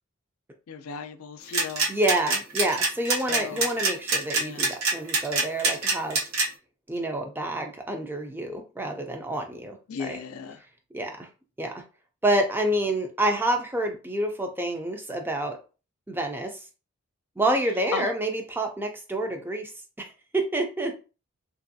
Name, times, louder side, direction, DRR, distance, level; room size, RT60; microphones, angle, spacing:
voice 1, 0.7-1.9 3.3-3.7 4.3-4.7 9.9-10.6 17.9-18.1, left 6 dB, 80° left, 0.4 m, -36 dB
sound 1, 1.5-6.4, right 3 dB, 70° right, 0.8 m, -24 dB
voice 2, 1.9-6.2 6.9-10.2 10.9-11.3 11.6-11.8 12.2-15.6 16.1-16.5 17.4-19.7 20.0-20.1 20.3-21.0, right 1 dB, 10° right, 0.4 m, -28 dB
3.0 x 2.5 x 2.6 m
head